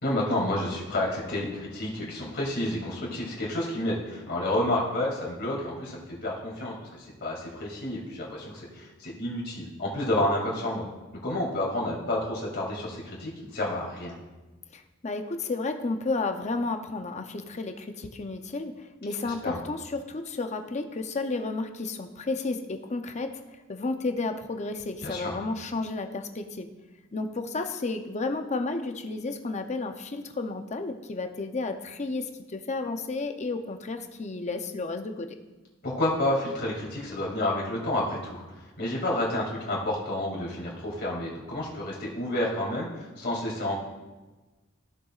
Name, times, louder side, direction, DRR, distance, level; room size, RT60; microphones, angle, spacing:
voice 1, 0.0-6.8 7.2-10.9 11.2-14.1 19.2-19.6 25.0-25.3 35.8-38.4 38.8-43.8, left 1 dB, 55° left, -3 dB, 2.5 m, -30 dB
voice 2, 14.7-23.4 23.7-26.7 27.1-35.3, left 3 dB, 35° left, 6 dB, 0.6 m, -32 dB
15.0 x 6.6 x 2.4 m, 1.2 s
head